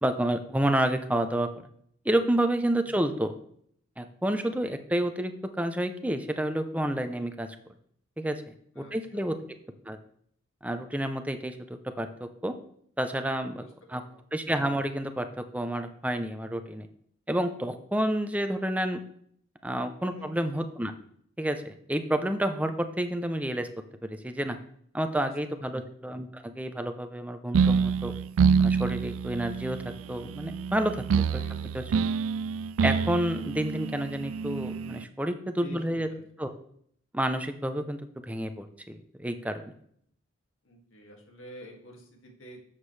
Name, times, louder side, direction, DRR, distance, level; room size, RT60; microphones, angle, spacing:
voice 1, 0.0-1.5 2.0-3.3 4.0-7.5 8.2-9.3 9.9-10.0 10.6-11.6 12.0-12.5 13.0-13.6 13.9-14.0 14.3-16.9 17.3-19.0 19.6-20.9 21.4-23.7 24.0-24.6 24.9-28.1 28.6-29.8 30.1-31.0 31.7-31.8 32.8-36.1 36.4-36.5 37.1-38.0 38.2-39.6, right 1 dB, 5° right, 7 dB, 0.6 m, -29 dB
voice 2, 8.7-9.3 13.5-14.2 20.0-20.4 25.1-25.7 31.4-31.7 35.6-36.4 40.6-42.6, right 1 dB, 80° left, 0 dB, 2.2 m, -48 dB
sound 1, 27.5-35.0, right 6 dB, 85° right, 0.4 m, -27 dB
13.0 x 7.4 x 3.3 m, 0.67 s
head